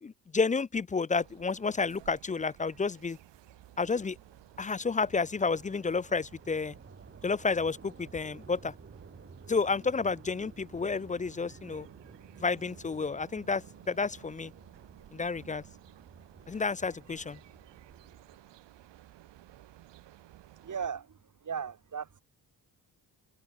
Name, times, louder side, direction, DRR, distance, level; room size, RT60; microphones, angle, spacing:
voice 1, 0.0-3.2 3.8-4.2 4.6-6.7 7.2-8.7 9.5-11.9 12.4-14.5 15.1-15.6 16.5-17.4, left 4 dB, 20° left, 0.4 m, -30 dB
sound 1, 1.2-20.9, right 14 dB, 85° right, 3.4 m, -56 dB
sound 2, 3.3-18.7, right 4 dB, 30° right, 5.0 m, -54 dB
voice 2, 20.6-22.2, right 7 dB, 45° right, 2.8 m, -37 dB
cardioid pair, 70°, 42 cm